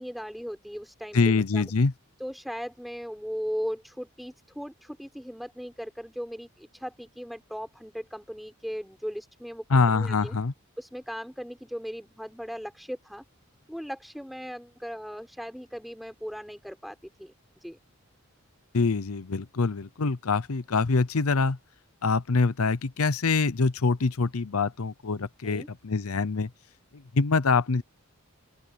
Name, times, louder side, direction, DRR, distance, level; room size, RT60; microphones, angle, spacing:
voice 1, 0.0-1.7 2.2-10.4 10.8-13.2 13.7-17.8 25.4-25.7, equal, ahead, 5.8 m, -38 dB
voice 2, 1.1-1.9 9.7-10.5 18.7-21.6 22.0-26.5 27.1-27.8, left 4 dB, 90° left, 0.8 m, -24 dB
open air
head